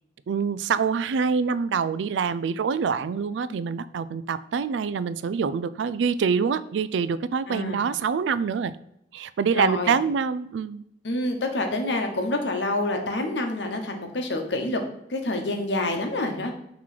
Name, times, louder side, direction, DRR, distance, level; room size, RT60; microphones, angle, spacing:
voice 1, 0.3-8.8 9.1-10.8, right 6 dB, 80° right, 16 dB, 0.3 m, -25 dB
voice 2, 7.5-7.8 9.5-9.9 11.0-14.8 15.1-16.5, left 2 dB, 75° left, 4 dB, 1.0 m, -27 dB
6.0 x 3.1 x 5.8 m, 0.80 s
head